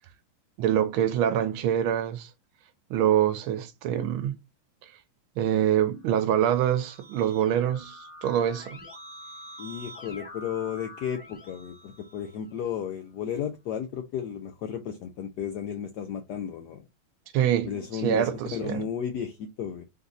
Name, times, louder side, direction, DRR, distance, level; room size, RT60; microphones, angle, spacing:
voice 1, 0.6-2.3 2.9-4.4 5.4-8.8 17.3-18.8, right 10 dB, 80° right, 1.4 m, -25 dB
Keyboard (musical), 6.1-12.7, left 1 dB, 10° right, 0.8 m, -46 dB
voice 2, 9.6-16.8 17.6-19.8, left 8 dB, 80° left, 0.9 m, -33 dB
3.9 x 2.7 x 3.9 m
omnidirectional pair, 2.3 m